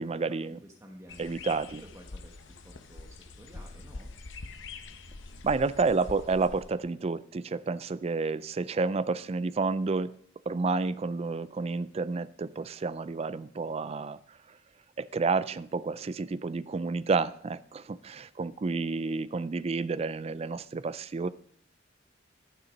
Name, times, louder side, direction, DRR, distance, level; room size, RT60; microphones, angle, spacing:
voice 1, 0.0-0.6 1.2-1.8 5.4-10.1 10.5-14.2 15.0-21.3, right 4 dB, 30° right, 16 dB, 0.4 m, -30 dB
voice 2, 0.6-1.2 1.6-2.4 2.6-4.1, equal, 15° right, 1 dB, 1.1 m, -51 dB
sound 1, 1.1-6.8, left 3 dB, 70° left, 0.8 m, -45 dB
12.0 x 6.8 x 5.2 m, 0.65 s
head